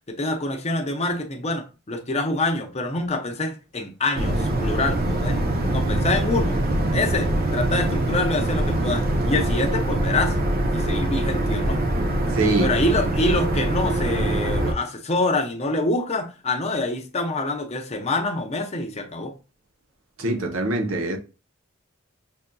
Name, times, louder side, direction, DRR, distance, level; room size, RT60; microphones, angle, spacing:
voice 1, 0.1-6.6 6.9-10.4 10.7-11.8 12.6-19.3, left 2 dB, 30° left, 0.6 m, -26 dB
sound 1, 4.1-14.7, right 1 dB, 45° right, 0.6 m, -23 dB
voice 2, 12.3-12.7 20.2-21.2, right 2 dB, 80° right, 0.9 m, -23 dB
5.4 x 2.6 x 2.2 m
head